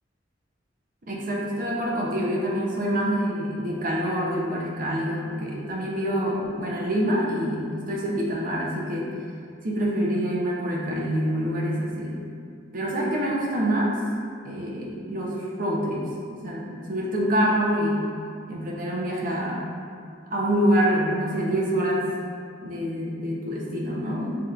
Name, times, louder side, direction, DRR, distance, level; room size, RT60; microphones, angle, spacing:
voice 1, 1.0-9.1 9.6-12.2 12.7-13.9 14.4-18.1 18.5-19.6 20.3-22.1 22.6-24.5, equal, 45° right, -3 dB, 0.8 m, -26 dB
6.9 x 2.9 x 2.5 m, 2.2 s
head